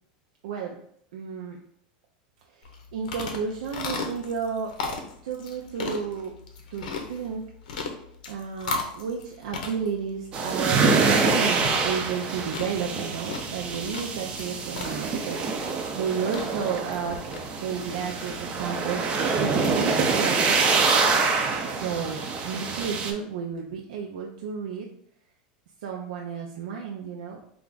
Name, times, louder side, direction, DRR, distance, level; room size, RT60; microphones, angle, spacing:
voice 1, 0.4-0.7 1.1-1.6 2.5-4.8 5.2-6.4 6.7-7.5 8.3-17.2 17.6-20.6 21.6-22.2 22.4-24.9 25.8-27.4, right 6 dB, 85° right, 0 dB, 0.5 m, -32 dB
sound 1, 2.6-19.7, left 4 dB, 85° left, 0.7 m, -38 dB
sound 2, 10.3-23.1, right 4 dB, 25° right, 0.4 m, -25 dB
3.3 x 2.4 x 3.8 m, 0.69 s
supercardioid pair, 160°, 4 cm